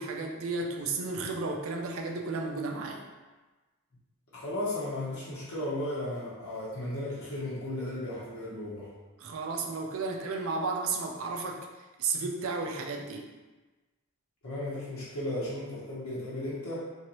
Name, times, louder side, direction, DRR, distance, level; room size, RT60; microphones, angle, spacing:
voice 1, 0.0-3.0 9.2-11.7 12.0-13.3, right 3 dB, 65° right, 2 dB, 0.4 m, -33 dB
voice 2, 4.3-8.9 14.4-16.8, left 1 dB, 75° left, -8 dB, 0.9 m, -35 dB
3.1 x 2.7 x 2.9 m, 1.2 s
head